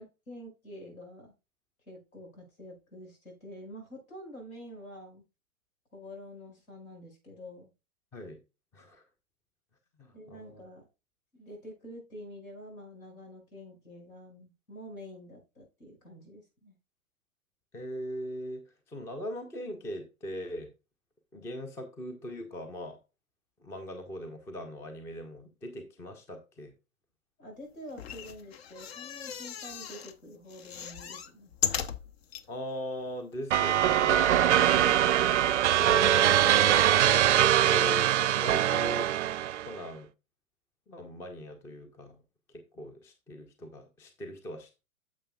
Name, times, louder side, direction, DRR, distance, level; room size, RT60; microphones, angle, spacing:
voice 1, 0.0-1.3 1.9-5.2 5.9-7.7 10.1-10.9 11.4-16.8 27.4-31.5 34.7-35.1, equal, 70° left, 2 dB, 5.3 m, -47 dB
voice 2, 8.7-9.0 10.0-10.6 17.7-18.6 18.9-20.7 21.3-23.0 23.6-26.7 32.5-34.2 35.8-38.1 38.4-39.1 39.7-40.1 40.9-42.2 42.5-44.8, equal, 5° left, 5 dB, 0.5 m, -39 dB
sound 1, 27.9-30.1 30.5-32.5 33.0-33.1 33.3-33.4, left 8 dB, 45° left, 0.8 m, -36 dB
sound 2, 33.5-39.7, right 11 dB, 55° right, 0.5 m, -23 dB
9.9 x 7.0 x 2.3 m, 0.28 s
figure-of-eight pair, 110°, 43 cm